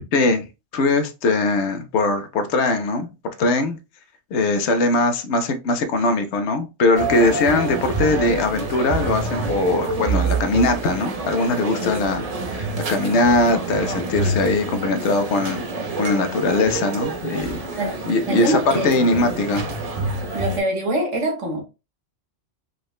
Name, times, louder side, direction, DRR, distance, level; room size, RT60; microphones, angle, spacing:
voice 1, 0.1-0.5 0.7-3.1 3.4-3.8 4.3-15.6 16.0-17.6 18.1-19.7, left 2 dB, 75° left, 0.9 m, -21 dB
sound 1, 7.0-20.6, right 3 dB, 45° right, 0.5 m, -27 dB
voice 2, 18.3-19.0 20.3-21.6, right 1 dB, 80° right, 1.5 m, -24 dB
4.9 x 2.1 x 2.3 m
omnidirectional pair, 1.2 m